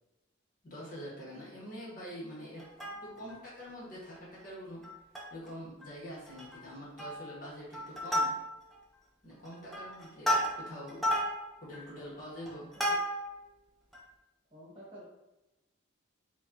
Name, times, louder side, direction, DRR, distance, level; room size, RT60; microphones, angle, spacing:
voice 1, 0.6-4.9 5.3-8.3 9.2-11.2 11.6-12.7, equal, 40° left, -6 dB, 1.4 m, -45 dB
Plucked string instrument, 2.6-3.4 3.8-3.9 4.2-4.4 4.8-5.5 5.8-5.9 6.3-6.6 7.0-7.4 7.7-8.8 9.3-13.4 13.9-14.0, equal, ahead, 0.6 m, -33 dB
voice 2, 14.5-15.0, equal, 25° right, -6 dB, 1.2 m, -52 dB
5.1 x 2.4 x 2.7 m, 0.97 s
head